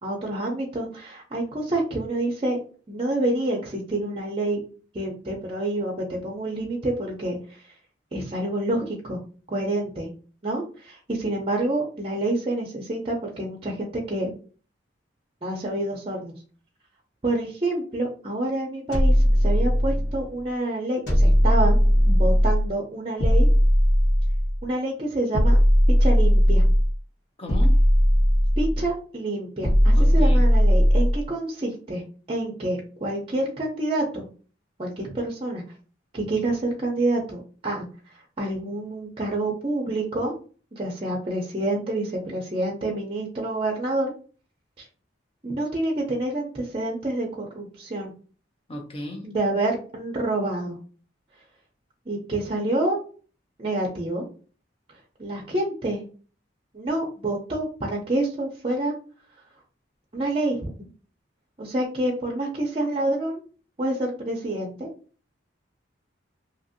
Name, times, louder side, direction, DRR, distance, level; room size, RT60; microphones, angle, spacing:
voice 1, 0.0-2.6 2.9-4.6 4.9-7.7 8.1-9.2 9.5-10.1 10.4-14.3 15.4-16.4 17.2-21.8 22.1-23.5 24.6-25.6 25.9-26.7 28.6-32.0 32.3-34.3 34.8-35.6 36.1-40.3 40.7-44.1 44.8-44.9 45.4-48.1 49.2-50.8 52.1-53.0 53.6-54.3 54.9-56.0 56.7-58.9 60.1-60.7 61.6-63.4 63.8-64.9, right 1 dB, 30° right, -1 dB, 0.5 m, -27 dB
sound 1, 18.9-20.2 21.1-22.7 23.2-24.6 25.3-27.0 27.5-28.9 29.6-31.2, equal, 60° left, 1.4 m, -18 dB
voice 2, 27.4-27.8 29.9-30.5 48.7-49.3, left 1 dB, 30° left, 2 dB, 0.7 m, -35 dB
2.8 x 2.6 x 2.6 m, 0.39 s
head